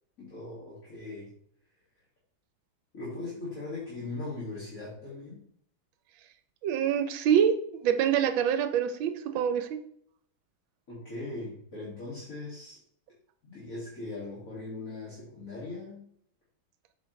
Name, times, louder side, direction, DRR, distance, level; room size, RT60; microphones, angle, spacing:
voice 1, 0.2-1.3 2.9-5.4 10.9-12.8 13.4-16.0, left 2 dB, 40° left, -7 dB, 2.6 m, -39 dB
voice 2, 6.6-7.6 7.8-9.8, right 9 dB, 80° right, 10 dB, 1.4 m, -25 dB
8.1 x 6.2 x 3.2 m, 0.66 s
omnidirectional pair, 2.2 m